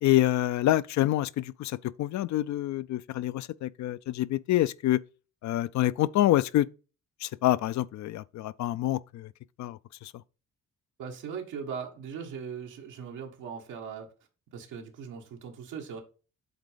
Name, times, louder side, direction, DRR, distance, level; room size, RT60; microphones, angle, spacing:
voice 1, 0.0-5.0 5.4-6.7 7.2-9.3 9.6-10.1, left 14 dB, 65° left, 0.5 m, -27 dB
voice 2, 11.0-14.1 14.5-16.0, right 6 dB, 90° right, 1.5 m, -39 dB
8.0 x 3.6 x 5.0 m
cardioid pair, 90°, 30 cm